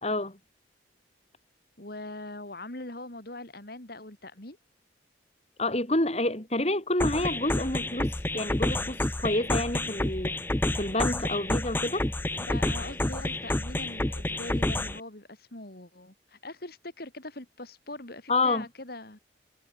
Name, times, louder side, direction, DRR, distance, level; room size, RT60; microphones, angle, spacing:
voice 1, 0.0-0.4 5.6-10.4 10.8-12.1 18.3-18.6, left 2 dB, 35° left, 3.3 m, -28 dB
voice 2, 1.8-4.6 12.4-19.2, left 2 dB, 55° left, 2.8 m, -42 dB
sound 1, 7.0-15.0, left 1 dB, 10° left, 0.7 m, -29 dB
head